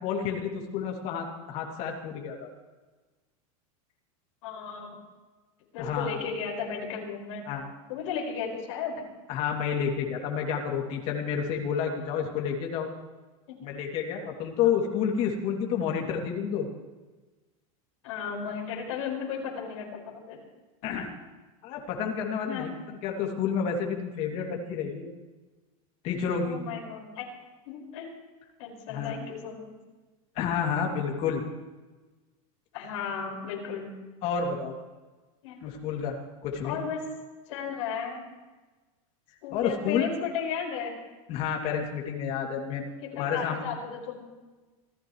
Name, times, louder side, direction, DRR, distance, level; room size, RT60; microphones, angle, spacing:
voice 1, 0.0-2.5 5.8-6.2 7.5-7.7 9.3-12.9 13.6-16.7 20.8-21.1 21.6-25.1 26.0-26.6 28.9-29.2 30.3-31.4 34.2-34.7 35.6-36.2 36.4-36.8 39.5-40.1 41.3-43.6, left 7 dB, 35° left, 1 dB, 2.7 m, -30 dB
voice 2, 4.4-5.0 5.7-7.5 7.9-9.0 14.2-14.4 14.6-14.8 18.0-20.4 22.5-22.7 26.4-27.2 27.7-28.1 28.6-29.7 32.7-33.9 35.4-35.6 36.6-37.0 37.5-38.2 39.4-40.9 43.0-44.3, left 6 dB, 60° left, -1 dB, 5.3 m, -35 dB
27.0 x 14.5 x 3.2 m, 1.3 s
supercardioid pair, 170°, 18 cm